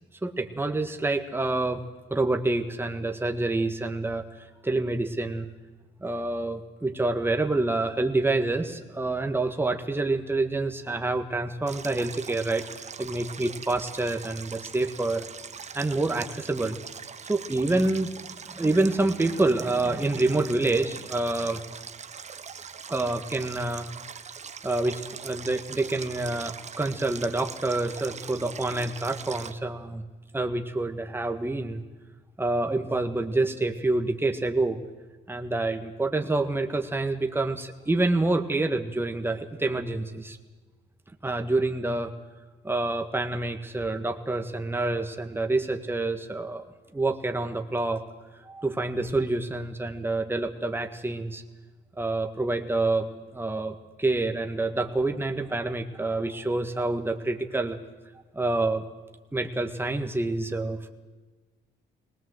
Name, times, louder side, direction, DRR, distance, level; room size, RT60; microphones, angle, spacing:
voice 1, 0.2-1.8 2.1-4.2 4.6-5.5 6.0-12.7 13.0-15.3 15.7-16.8 17.3-18.1 18.5-21.6 22.9-23.9 24.6-30.0 30.3-31.8 32.4-34.8 35.3-40.4 41.2-42.1 42.6-46.7 46.9-48.0 48.4-51.4 52.0-53.1 53.3-57.8 58.3-58.8 59.3-60.9, right 2 dB, 10° right, 5 dB, 1.6 m, -27 dB
Stream, 11.7-29.5, right 6 dB, 35° right, 0.8 m, -42 dB
19.5 x 19.5 x 7.9 m, 1.3 s
cardioid pair, 90°, 20 cm